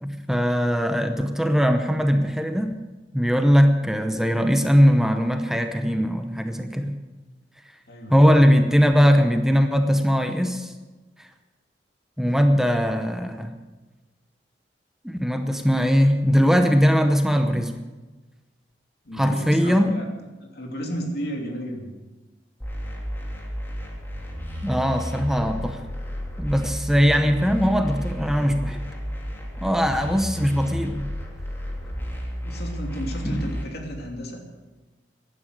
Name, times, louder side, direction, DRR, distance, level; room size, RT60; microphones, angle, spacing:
voice 1, 0.0-2.7 3.1-7.0 8.1-10.7 12.2-13.6 15.0-17.7 19.1-19.9 24.6-25.8 26.4-28.8 29.6-31.1 33.3-33.4, equal, 5° right, 6 dB, 0.8 m, -20 dB
voice 2, 7.9-8.3 19.0-20.0 20.5-21.9 27.0-27.5 32.4-34.4, equal, 65° left, 1 dB, 2.9 m, -33 dB
sound 1, 22.6-33.6, equal, 15° left, 3.0 m, -32 dB
15.5 x 11.0 x 6.6 m, 1.2 s
head